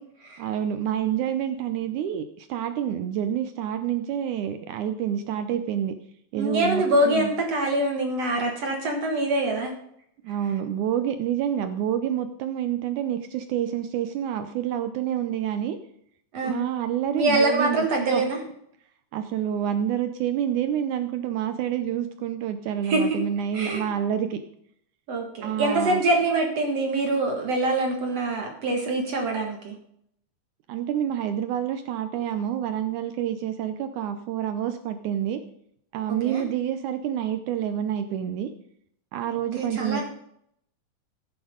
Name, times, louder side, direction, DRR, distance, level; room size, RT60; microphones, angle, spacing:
voice 1, 0.4-6.0 6.3-7.3 10.2-15.8 16.4-18.2 19.1-24.4 25.4-26.0 30.7-35.4 35.9-38.5 39.1-40.0, right 10 dB, 90° right, 9 dB, 1.7 m, -28 dB
voice 2, 6.3-9.7 16.3-16.6 17.1-18.4 22.8-23.2 23.5-23.9 25.1-29.8 36.2-36.4 39.6-40.0, right 2 dB, 55° right, 1 dB, 2.1 m, -24 dB
14.5 x 8.4 x 5.0 m, 0.71 s
omnidirectional pair, 4.3 m